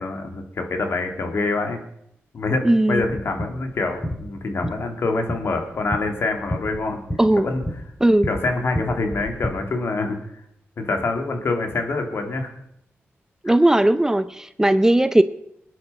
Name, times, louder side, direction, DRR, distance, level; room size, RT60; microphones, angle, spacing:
voice 1, 0.0-1.8 2.3-7.0 7.4-7.6 8.3-10.2 10.8-12.5 13.5-13.6, left 3 dB, 60° left, 4 dB, 2.9 m, -25 dB
voice 2, 2.6-3.0 7.2-7.5 8.0-8.3 13.4-15.2, right 1 dB, 10° right, 13 dB, 0.7 m, -17 dB
sound 1, 3.0-9.5, left 1 dB, 20° left, 3.2 m, -32 dB
20.5 x 9.6 x 5.8 m, 0.75 s
cardioid pair, 80°, 5 cm